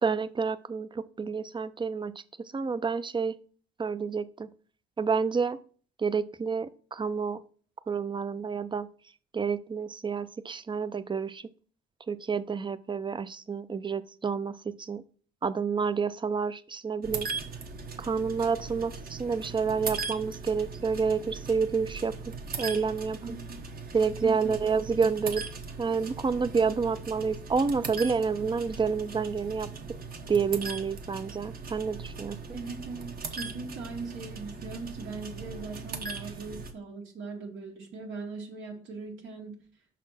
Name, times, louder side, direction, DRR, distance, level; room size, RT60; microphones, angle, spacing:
voice 1, 0.0-3.4 3.8-4.5 5.0-5.6 6.0-7.4 7.9-8.9 9.3-11.5 12.1-15.0 15.4-17.3 18.0-22.2 22.6-23.3 23.9-25.4 25.8-29.7 30.3-32.4, right 5 dB, 25° right, 15 dB, 0.5 m, -29 dB
sound 1, 17.0-36.7, right 4 dB, 50° right, 1.2 m, -39 dB
voice 2, 23.2-23.6 24.2-24.3 32.5-39.6, right 4 dB, 75° right, -1 dB, 1.8 m, -40 dB
6.0 x 4.2 x 5.6 m, 0.42 s
cardioid pair, 90°, 20 cm